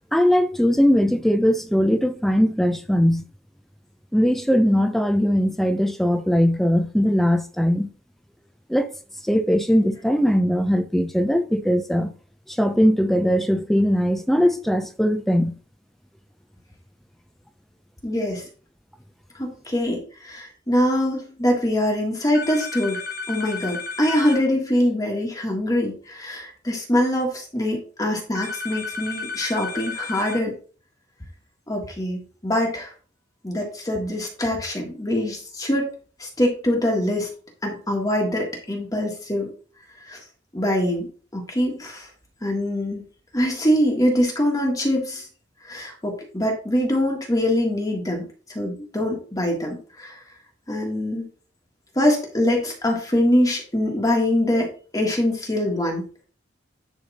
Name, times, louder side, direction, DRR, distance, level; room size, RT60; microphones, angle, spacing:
voice 1, 0.1-3.3 4.1-7.9 8.7-8.9 9.2-12.1 12.5-15.5, equal, ahead, 0.7 m, -20 dB
voice 2, 18.0-18.4 19.4-23.0 23.3-30.5 31.7-32.9 33.4-35.9 36.2-37.3 37.6-39.5 40.1-40.2 40.5-42.1 42.4-43.0 43.3-45.3 45.6-50.2 50.7-51.2 52.0-56.1, left 1 dB, 20° left, 1.7 m, -23 dB
sound 1, 22.3-24.4 28.4-30.4, left 4 dB, 55° left, 1.5 m, -32 dB
10.5 x 3.6 x 4.2 m
head